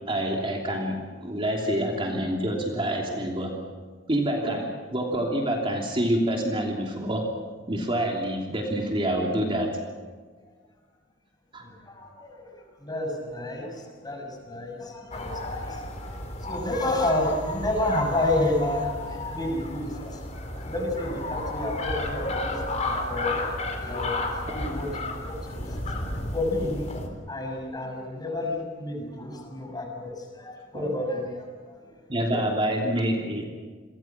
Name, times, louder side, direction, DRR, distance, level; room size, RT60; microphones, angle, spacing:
voice 1, 0.1-3.5 4.1-7.3 7.7-9.7 11.5-11.6 24.5-24.6 30.7-30.9 32.1-33.4, right 1 dB, 30° right, 0 dB, 3.0 m, -27 dB
voice 2, 11.6-12.4 12.8-26.9 27.3-31.8, left 1 dB, 20° left, 2 dB, 6.4 m, -31 dB
sound 1, 15.1-27.1, left 1 dB, 35° left, 3.8 m, -32 dB
29.5 x 23.0 x 6.1 m, 1.5 s
head